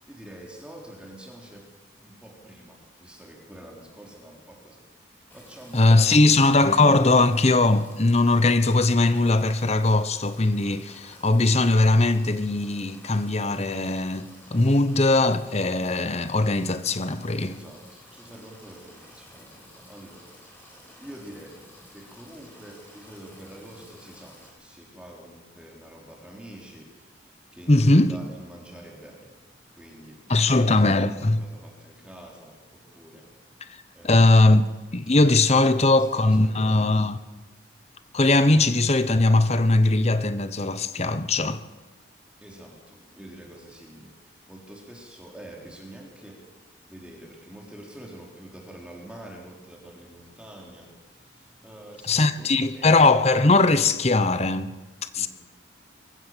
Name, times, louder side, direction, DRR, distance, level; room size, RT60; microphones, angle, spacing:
voice 1, 0.1-1.7 2.0-6.4 17.4-20.3 21.0-21.7 21.9-34.5 35.6-37.1 37.5-37.7 38.0-38.1 42.4-46.5 46.9-52.9 55.1-55.3, right 1 dB, 5° right, 3.8 m, -46 dB
sound 1, 5.3-24.5, left 1 dB, 10° left, 4.8 m, -51 dB
voice 2, 5.7-17.6 27.7-28.1 30.3-31.4 34.0-34.6 34.9-37.2 38.1-41.6 52.1-54.7 55.1-55.3, left 2 dB, 35° left, 1.0 m, -20 dB
24.0 x 15.0 x 7.5 m
head